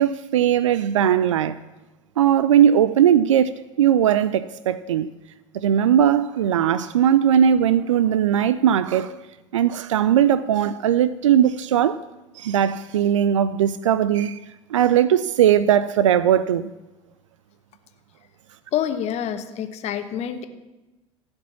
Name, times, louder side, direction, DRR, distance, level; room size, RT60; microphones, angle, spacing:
voice 1, 0.0-1.6 2.2-5.1 5.5-9.1 9.5-12.0 12.4-14.4 14.7-16.7, right 9 dB, 75° right, 0.4 m, -19 dB
voice 2, 18.7-20.5, left 9 dB, 40° left, 1.1 m, -27 dB
15.0 x 5.2 x 7.2 m
figure-of-eight pair, 70°, 16 cm